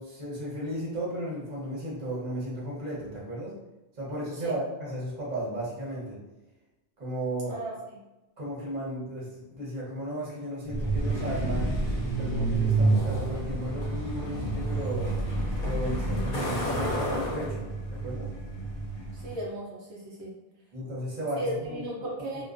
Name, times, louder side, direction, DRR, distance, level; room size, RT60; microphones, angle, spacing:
voice 1, 0.0-3.5 4.0-6.2 7.0-7.6 8.4-11.8 12.2-15.1 15.6-18.3 20.7-21.8 22.3-22.4, right 1 dB, 45° right, -7 dB, 1.0 m, -34 dB
Truck, 10.7-19.4, right 2 dB, 60° left, 0.8 m, -29 dB
voice 2, 19.1-20.3 21.4-22.4, right 1 dB, 80° right, -4 dB, 0.9 m, -35 dB
2.3 x 2.2 x 2.4 m, 1.0 s
omnidirectional pair, 1.1 m